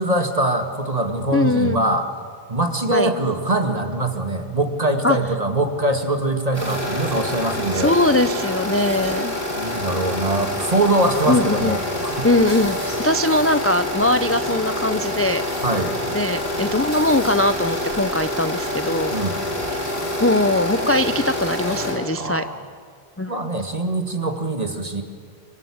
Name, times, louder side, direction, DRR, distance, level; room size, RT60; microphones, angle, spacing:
voice 1, 0.0-2.1 2.5-8.0 9.5-12.3 15.6-16.0 19.1-19.4 22.1-22.6 23.3-25.0, right 2 dB, 40° right, 6 dB, 2.3 m, -23 dB
voice 2, 1.3-1.8 2.9-3.1 5.0-5.2 7.7-9.3 11.3-11.8 12.2-15.4 16.1-19.1 20.2-22.4 23.2-23.4, left 2 dB, 15° left, 10 dB, 0.6 m, -20 dB
sound 1, 6.5-21.9, left 1 dB, 75° left, 7.2 m, -27 dB
26.5 x 23.5 x 8.7 m, 2.1 s
omnidirectional pair, 1.0 m